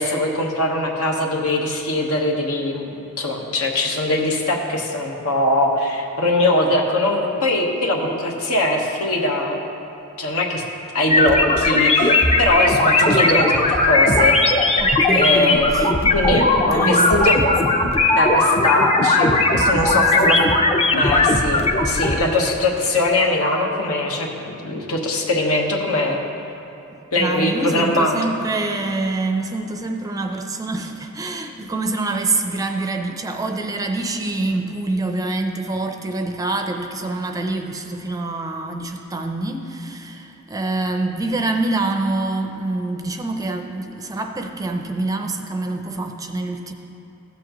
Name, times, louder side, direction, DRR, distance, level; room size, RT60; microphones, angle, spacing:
voice 1, 0.0-9.6 10.2-10.6 10.9-14.7 15.1-15.7 16.1-17.4 18.2-20.4 20.9-26.2 27.1-28.2, left 2 dB, 75° left, 0 dB, 1.2 m, -21 dB
sound 1, 11.1-22.2, left 2 dB, 30° left, 0.6 m, -17 dB
voice 2, 14.8-15.9 16.7-17.4 19.8-20.6 27.2-46.7, right 2 dB, 15° right, 4 dB, 0.5 m, -26 dB
15.0 x 7.6 x 3.0 m, 2.8 s
head